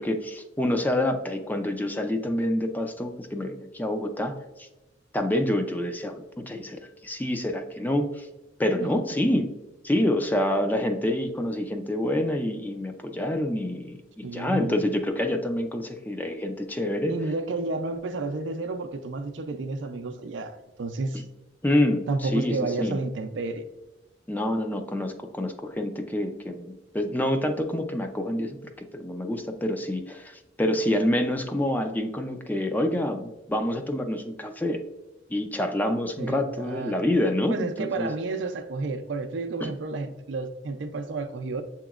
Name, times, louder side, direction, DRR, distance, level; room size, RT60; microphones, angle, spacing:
voice 1, 0.0-4.7 5.1-8.3 8.6-9.5 9.8-17.1 21.6-23.0 24.3-28.6 28.9-34.8 35.3-38.1 39.6-39.7, left 1 dB, 10° left, 0.3 m, -27 dB
voice 2, 14.2-14.8 17.1-21.2 22.1-23.6 36.2-36.9 37.5-41.6, right 3 dB, 75° right, 0.4 m, -31 dB
7.0 x 2.9 x 2.4 m
head